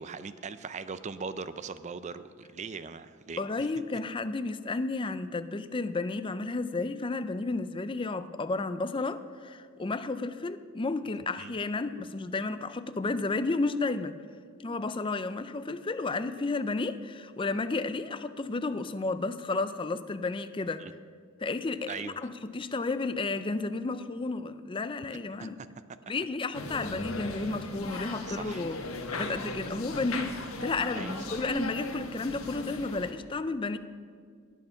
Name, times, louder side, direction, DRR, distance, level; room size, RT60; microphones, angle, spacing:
voice 1, 0.0-3.7 11.4-11.5 20.8-20.9 21.9-22.2 25.4-25.7 28.3-28.7 30.9-31.2, right 5 dB, 35° right, 13 dB, 0.4 m, -40 dB
voice 2, 3.4-14.1 14.6-20.8 21.4-25.6 26.1-33.8, left 3 dB, 25° left, 11 dB, 0.4 m, -32 dB
sound 1, 26.5-33.1, left 2 dB, 90° left, 1.4 m, -37 dB
18.5 x 9.2 x 5.7 m, 2.1 s
head